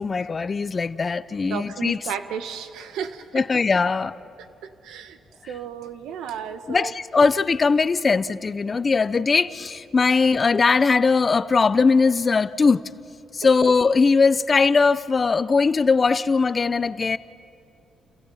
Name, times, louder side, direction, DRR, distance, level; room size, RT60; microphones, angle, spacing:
voice 1, 0.0-2.0 3.3-4.1 5.4-5.5 6.7-12.8 13.3-17.2, left 4 dB, 35° left, 16 dB, 0.7 m, -20 dB
voice 2, 1.4-3.4 4.6-5.2 5.5-6.9 13.4-13.5, right 8 dB, 85° right, 10 dB, 1.4 m, -33 dB
29.5 x 28.5 x 5.7 m, 2.6 s
cardioid pair, 90°, 0 cm